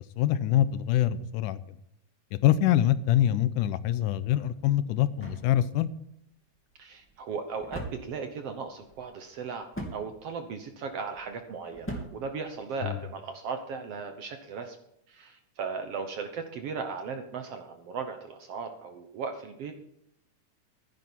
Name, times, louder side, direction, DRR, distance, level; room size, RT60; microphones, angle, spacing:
voice 1, 0.2-1.6 2.3-5.9 12.8-13.0, left 12 dB, 85° left, 14 dB, 2.2 m, -25 dB
sound 1, 4.3-13.2, right 1 dB, 5° left, 2.1 m, -44 dB
voice 2, 6.8-14.8 15.1-19.7, right 5 dB, 65° right, 6 dB, 1.7 m, -37 dB
14.5 x 11.0 x 4.5 m, 0.78 s
omnidirectional pair, 3.7 m